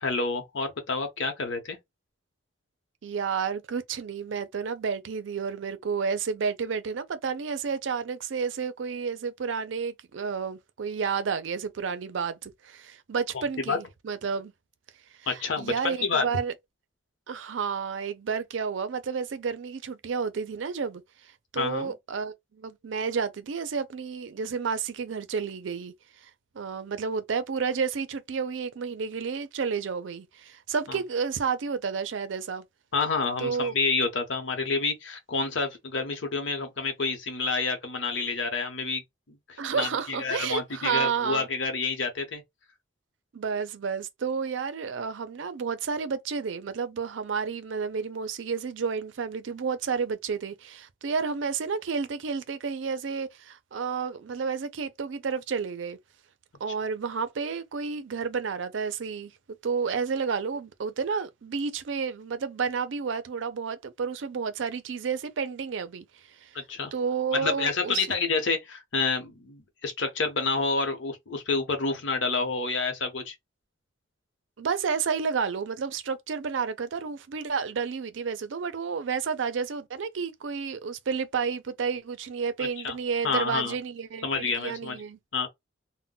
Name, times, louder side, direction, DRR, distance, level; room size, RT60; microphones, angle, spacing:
voice 1, 0.0-1.8 13.3-13.8 15.3-16.2 21.6-21.9 30.9-31.0 32.9-39.0 39.5-42.4 66.5-66.9 67.3-73.3 82.6-83.0 83.2-83.7 84.2-85.0 85.3-85.5, left 4 dB, 70° left, 0.8 m, -29 dB
voice 2, 3.0-14.5 15.3-16.5 17.3-21.0 21.5-25.9 26.5-32.6 33.4-33.7 39.6-41.5 43.3-56.0 56.6-59.3 59.6-66.0 66.4-66.5 66.9-68.1 74.6-85.2, right 5 dB, 75° right, 0.5 m, -31 dB
2.2 x 2.1 x 3.7 m
head